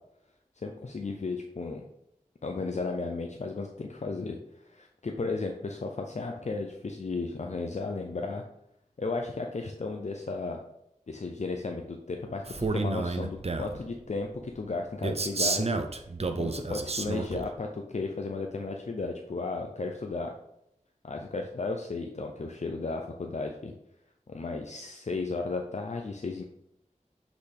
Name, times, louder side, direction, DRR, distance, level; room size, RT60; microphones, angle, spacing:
voice 1, 0.6-1.9 2.4-4.4 4.7-8.4 9.0-10.6 11.1-12.4 12.7-14.3 14.5-15.8 16.3-20.3 21.0-23.7 24.3-26.4, left 3 dB, 55° left, 3 dB, 0.6 m, -34 dB
Male speech man speaking, 12.5-13.8 15.0-17.5, right 3 dB, 50° right, 0.6 m, -30 dB
8.0 x 4.1 x 3.4 m, 0.80 s
wide cardioid pair, 55°, 14 cm